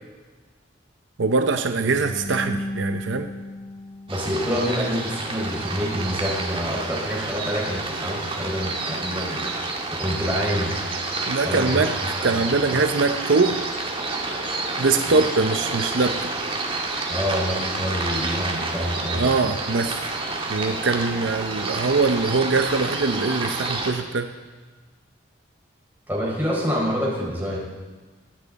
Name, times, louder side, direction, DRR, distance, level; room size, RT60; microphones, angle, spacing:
voice 1, 1.2-3.3 11.3-11.9 12.2-13.6 14.8-16.3 19.1-20.1 20.5-24.3, right 3 dB, 75° right, 7 dB, 0.7 m, -22 dB
sound 1, 1.7-4.9, left 1 dB, 35° left, 1.0 m, -35 dB
voice 2, 4.1-9.5 9.9-10.7 11.4-11.8 12.2-12.3 12.7-12.8 15.1-15.3 17.1-19.3 26.1-27.6, equal, 10° right, -6 dB, 5.4 m, -27 dB
sound 2, 4.1-23.9, right 3 dB, 30° right, 1.8 m, -29 dB
24.5 x 9.2 x 4.1 m, 1.3 s
head